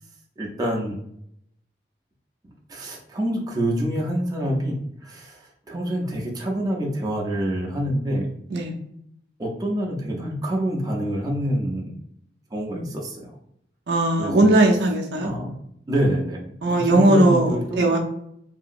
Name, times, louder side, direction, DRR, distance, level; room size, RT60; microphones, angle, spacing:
voice 1, 0.4-1.0 2.7-8.3 9.4-11.9 12.5-13.4 14.2-14.5 15.2-15.5 15.9-16.4 16.7-17.8, equal, 20° right, -2 dB, 0.5 m, -26 dB
voice 2, 13.9-15.3 16.6-18.0, right 1 dB, 70° right, 1 dB, 0.5 m, -18 dB
2.8 x 2.7 x 2.5 m, 0.73 s
head